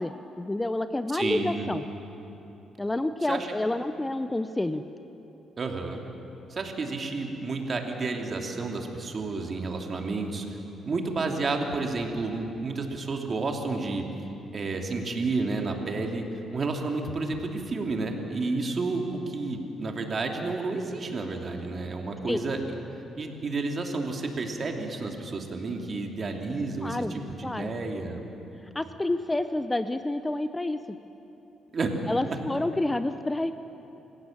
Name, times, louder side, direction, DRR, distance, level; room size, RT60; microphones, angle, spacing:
voice 1, 0.0-1.8 2.8-4.8 22.3-22.4 26.8-27.1 27.4-27.7 28.7-30.8 32.1-33.5, left 2 dB, 15° left, 11 dB, 0.7 m, -28 dB
voice 2, 1.1-1.7 3.3-3.5 5.6-6.0 6.5-10.6 10.9-14.0 14.5-16.2 16.5-22.6 23.2-28.2 31.7-31.9 32.3-32.4, right 3 dB, 40° right, 3 dB, 2.7 m, -31 dB
27.0 x 16.0 x 7.3 m, 3.0 s
cardioid pair, 90°, 0 cm